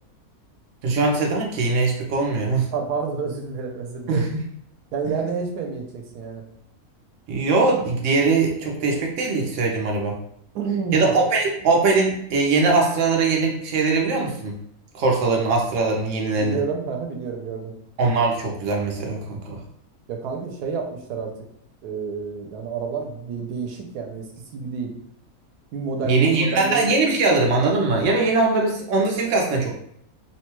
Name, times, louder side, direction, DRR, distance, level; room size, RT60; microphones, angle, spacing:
voice 1, 0.8-2.7 4.1-4.4 5.0-5.1 7.3-10.2 10.9-14.6 14.9-16.6 18.0-19.6 26.0-29.7, right 3 dB, 60° right, 0 dB, 0.9 m, -21 dB
voice 2, 2.7-4.2 4.9-6.4 10.5-11.1 16.3-17.7 20.1-21.3 21.8-24.3 24.5-24.9 25.7-26.9, right 5 dB, 90° right, 2 dB, 1.1 m, -29 dB
3.0 x 2.2 x 3.0 m, 0.71 s
omnidirectional pair, 1.6 m